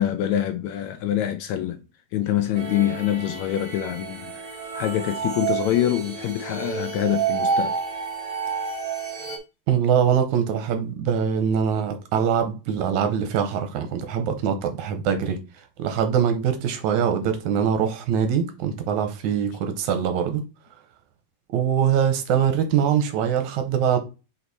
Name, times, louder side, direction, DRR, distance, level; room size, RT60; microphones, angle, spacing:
voice 1, 0.0-1.8 2.1-4.3 4.7-7.7, left 12 dB, 75° left, 1.7 m, -25 dB
sound 1, 2.6-9.4, right 6 dB, 35° right, 1.5 m, -29 dB
voice 2, 9.7-15.4 15.8-20.4 21.5-24.0, right 8 dB, 75° right, 2.2 m, -23 dB
5.2 x 4.6 x 4.1 m
omnidirectional pair, 3.6 m